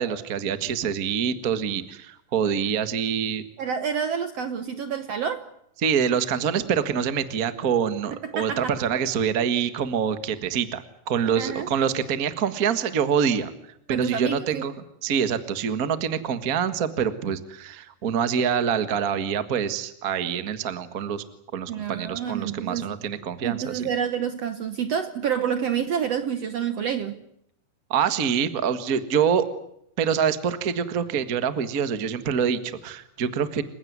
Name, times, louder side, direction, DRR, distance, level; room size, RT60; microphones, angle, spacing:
voice 1, 0.0-3.4 5.8-13.5 13.9-14.7 15.0-21.2 21.5-23.9 27.9-29.5 30.0-33.6, right 7 dB, 45° right, 1.2 m, -25 dB
voice 2, 3.6-5.5 8.2-8.8 11.4-11.7 13.9-14.6 21.7-23.0 23.4-27.2, right 8 dB, 65° right, 1.7 m, -28 dB
29.5 x 16.0 x 9.5 m
omnidirectional pair, 4.0 m